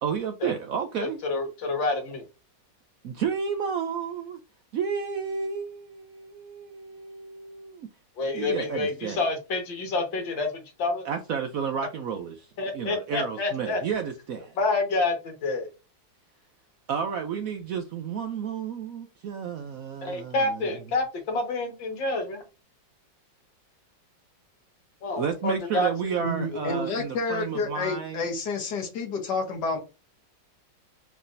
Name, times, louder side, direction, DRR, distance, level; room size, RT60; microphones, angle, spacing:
voice 1, 0.0-1.2 3.0-4.4 4.7-7.9 8.3-9.2 11.0-12.5 12.7-14.5 16.9-20.7 25.2-28.2, right 7 dB, 70° right, 0.8 m, -31 dB
voice 2, 1.0-2.2 8.2-11.1 12.6-13.8 14.6-15.7 20.0-22.4 25.0-25.9, left 3 dB, 80° left, 2.1 m, -28 dB
voice 3, 26.2-29.8, left 3 dB, 65° left, 1.8 m, -29 dB
4.9 x 3.4 x 2.6 m
omnidirectional pair, 2.0 m